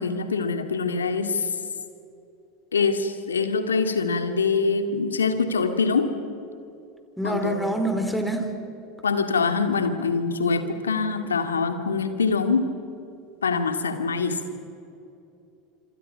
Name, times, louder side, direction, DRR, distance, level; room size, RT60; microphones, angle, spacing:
voice 1, 0.0-1.5 2.7-6.1 7.2-7.6 9.0-12.7 13.4-14.4, left 4 dB, 90° left, 7 dB, 2.2 m, -24 dB
voice 2, 7.2-8.5, right 1 dB, ahead, 5 dB, 4.2 m, -26 dB
27.0 x 26.0 x 5.9 m, 2.7 s
hypercardioid pair, 80°, 0 cm